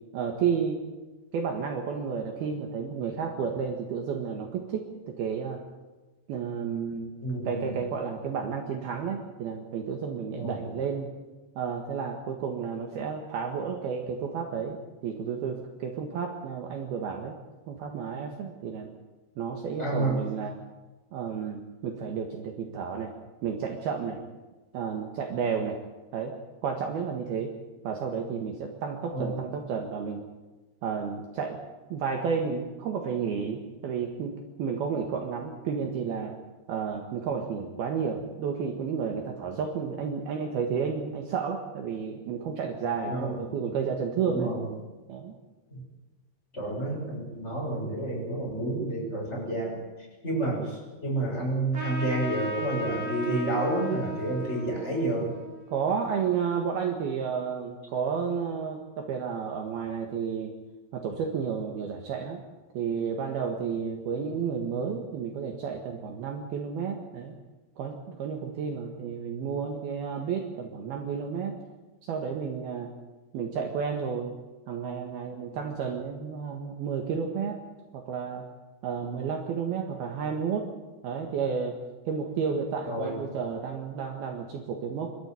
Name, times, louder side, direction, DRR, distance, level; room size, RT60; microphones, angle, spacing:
voice 1, 0.1-0.8 1.3-5.6 6.3-7.1 7.4-11.1 11.6-17.4 17.7-18.9 19.4-20.5 21.1-23.1 23.4-24.2 24.7-25.8 26.1-26.4 26.6-27.5 27.8-30.2 30.8-31.6 31.9-34.3 34.6-36.4 36.7-44.5 45.1-45.3 55.7-60.5 60.9-62.4 62.7-67.3 67.8-71.6 72.0-72.9 73.3-74.3 74.7-77.6 77.9-78.5 78.8-80.7 81.0-81.8 82.1-85.1, right 6 dB, 65° right, 3 dB, 3.2 m, -31 dB
voice 2, 7.2-7.8 10.3-10.6 19.8-20.2 29.1-29.4 43.1-43.3 44.2-44.7 45.7-45.8 46.5-49.8 50.2-55.3 82.9-83.2, right 2 dB, 15° left, -3 dB, 7.2 m, -30 dB
Trumpet, 51.7-56.7, equal, 30° right, 3.9 m, -37 dB
26.0 x 13.0 x 9.6 m, 1.2 s
omnidirectional pair, 5.3 m